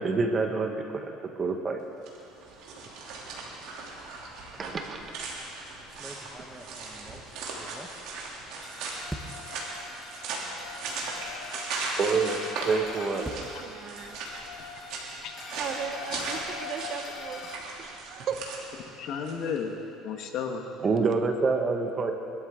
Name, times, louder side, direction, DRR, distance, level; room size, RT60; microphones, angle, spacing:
voice 1, 0.0-1.8 4.6-5.0 12.0-12.4 12.7-13.3 20.8-22.1, right 4 dB, 30° right, 5 dB, 1.2 m, -27 dB
sound 1, 1.9-19.6, right 3 dB, 65° right, 2.8 m, -38 dB
sound 2, 5.1-5.3 5.9-8.6 9.1-9.6 10.4-10.5 10.8-10.9 12.5-14.9, right 1 dB, 10° right, 0.9 m, -44 dB
sound 3, 8.6-17.6, left 5 dB, 35° left, 1.3 m, -43 dB
voice 2, 11.2-11.7 13.1-14.2 15.6-17.4 17.8-18.7, right 7 dB, 50° right, 7 dB, 0.9 m, -38 dB
voice 3, 15.2-15.7 16.1-16.2 19.0-19.8 20.0-20.7, left 6 dB, 55° left, 4 dB, 1.4 m, -33 dB
20.5 x 13.0 x 3.7 m, 2.7 s
cardioid pair, 135°, 0 cm